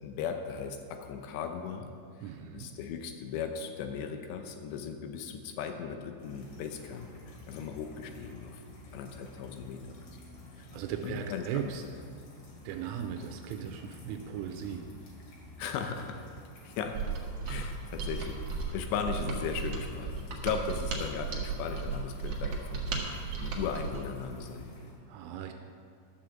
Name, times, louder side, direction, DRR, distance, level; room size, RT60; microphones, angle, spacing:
voice 1, 0.0-1.9 2.5-8.6 8.9-10.1 10.6-10.7 11.0-11.7 15.6-16.2 16.6-17.0 17.5-18.4 18.7-24.7, left 6 dB, 80° left, 5 dB, 2.6 m, -37 dB
voice 2, 2.2-2.7 10.6-11.8 12.6-14.9 25.1-25.5, right 9 dB, 85° right, 4 dB, 3.2 m, -38 dB
sound 1, 6.2-24.9, left 2 dB, 55° left, 3.8 m, -49 dB
Mechanisms, 16.9-24.1, right 5 dB, 65° right, 1.8 m, -35 dB
13.0 x 6.5 x 7.2 m, 2.4 s
omnidirectional pair, 5.7 m